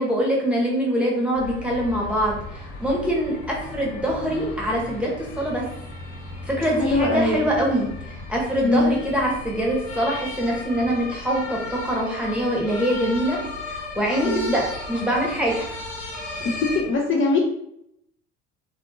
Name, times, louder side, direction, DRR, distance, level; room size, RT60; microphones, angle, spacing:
voice 1, 0.0-5.6 6.5-13.4 13.7-15.8, right 1 dB, 5° right, -3 dB, 1.0 m, -24 dB
sound 1, 1.3-16.8, left 2 dB, 65° left, 0.9 m, -36 dB
voice 2, 6.6-7.4 8.6-9.0 14.2-14.5 16.4-17.4, left 3 dB, 40° left, -1 dB, 0.6 m, -22 dB
2.5 x 2.5 x 2.6 m, 0.74 s
hypercardioid pair, 55°, 33 cm